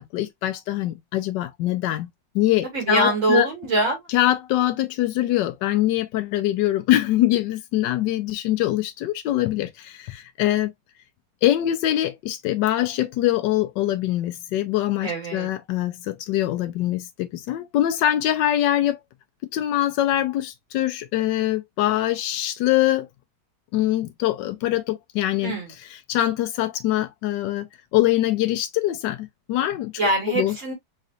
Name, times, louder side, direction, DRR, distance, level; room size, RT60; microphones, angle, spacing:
voice 1, 0.0-2.1 2.3-3.5 4.1-10.7 11.4-19.0 19.5-23.1 23.7-25.5 25.9-27.7 27.9-29.9 30.4-30.5, left 14 dB, 85° left, 1.3 m, -23 dB
voice 2, 2.7-4.1 15.0-15.5 25.4-25.7 30.0-30.7, right 2 dB, 45° right, 2.5 m, -23 dB
4.0 x 3.9 x 2.5 m
omnidirectional pair, 1.9 m